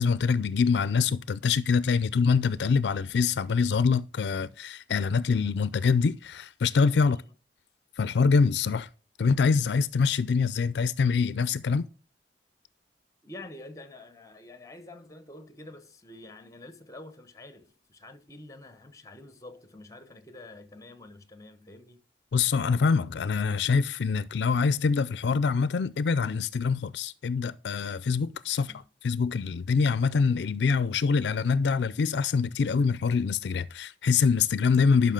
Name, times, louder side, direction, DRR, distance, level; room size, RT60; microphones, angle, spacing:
voice 1, 0.0-7.2 8.0-8.9 9.2-11.9 22.3-28.7 29.0-35.1, left 5 dB, 70° left, 0.4 m, -25 dB
voice 2, 7.0-7.3 13.2-22.0 28.5-28.8, left 2 dB, 20° left, 0.9 m, -47 dB
11.5 x 5.6 x 3.7 m
head